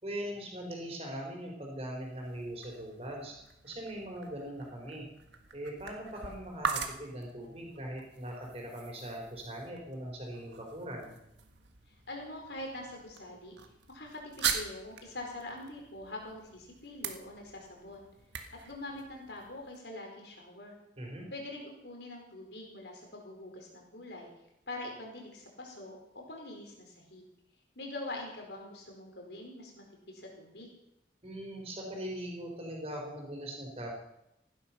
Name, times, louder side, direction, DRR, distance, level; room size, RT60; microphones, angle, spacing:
voice 1, 0.0-3.3 3.6-5.1 5.5-11.2 21.0-21.3 31.2-33.9, right 1 dB, 35° right, 0 dB, 4.3 m, -41 dB
sound 1, 2.0-19.8, right 6 dB, 90° right, 1.7 m, -42 dB
voice 2, 11.9-13.6 13.9-18.1 18.6-20.7 21.3-24.3 24.7-27.2 27.7-30.7, left 2 dB, 75° left, 1 dB, 4.7 m, -44 dB
16.0 x 11.5 x 6.0 m, 0.84 s
head